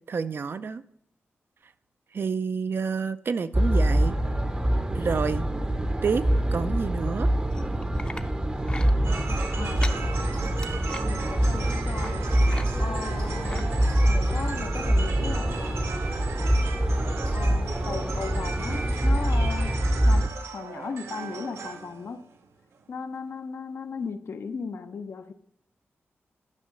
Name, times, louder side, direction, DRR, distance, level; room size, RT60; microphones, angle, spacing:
voice 1, 0.1-0.8 2.1-4.2 4.9-5.5 6.0-6.3 6.5-7.3, right 5 dB, 55° right, 12 dB, 0.4 m, -28 dB
sound 1, 3.5-20.3, right 1 dB, 20° right, 0.6 m, -25 dB
sound 2, 7.5-8.2 8.6-8.9 9.6-10.0 10.4-11.0 12.0-12.2 12.4-12.7 13.0-13.6 14.2-14.4 14.9-15.0, left 2 dB, 20° left, 0.6 m, -38 dB
sound 3, 9.0-22.9, right 5 dB, 85° right, 0.8 m, -38 dB
voice 2, 9.6-10.3 11.3-12.2 12.8-13.7 14.1-16.0 17.0-17.1 17.3-19.7 20.1-22.2 22.9-25.3, left 5 dB, 65° left, 8 dB, 0.7 m, -37 dB
10.5 x 5.5 x 5.2 m, 0.73 s
wide cardioid pair, 90°, 5 cm